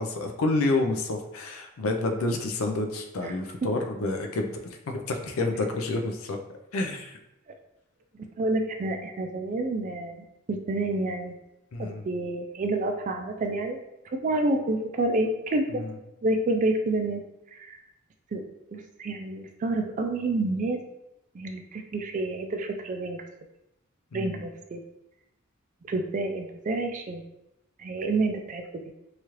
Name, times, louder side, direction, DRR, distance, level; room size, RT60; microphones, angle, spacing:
voice 1, 0.0-6.4 6.7-7.2 11.7-12.0 15.7-15.9 24.1-24.4, left 2 dB, 80° left, 4 dB, 0.4 m, -29 dB
voice 2, 8.1-11.3 11.8-13.8 14.1-15.8 16.2-17.2 17.5-17.8 18.3-18.4 18.7-20.8 21.3-23.2 24.1-24.8 25.9-27.2 27.8-28.8, right 2 dB, 40° right, 4 dB, 0.3 m, -29 dB
3.0 x 2.4 x 2.9 m, 0.88 s
head